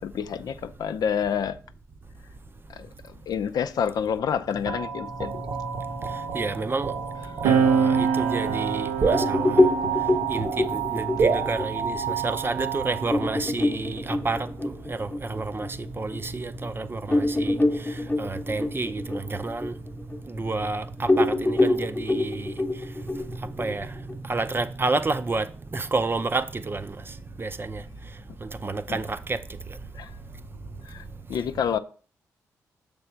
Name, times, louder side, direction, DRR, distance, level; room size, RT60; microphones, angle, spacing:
voice 1, 0.0-1.6 2.7-5.4 28.9-29.0 29.9-30.2 30.8-31.8, left 7 dB, 65° left, 0.5 m, -28 dB
sound 1, 4.7-13.4, right 6 dB, 60° right, 1.0 m, -29 dB
voice 2, 6.1-6.9 7.4-9.6 10.3-14.5 14.9-17.6 18.2-19.7 20.3-22.5 23.4-23.9 24.3-25.5 25.7-27.0 27.4-27.8 28.4-29.4, right 3 dB, 30° right, 0.6 m, -29 dB
sound 2, 7.4-14.4 15.3-17.2, right 6 dB, 85° right, 0.6 m, -29 dB
sound 3, 9.1-16.2 16.6-16.7 17.1-20.7 21.1-24.2, left 2 dB, 20° left, 0.9 m, -26 dB
6.6 x 3.5 x 5.7 m
hypercardioid pair, 45°, 7 cm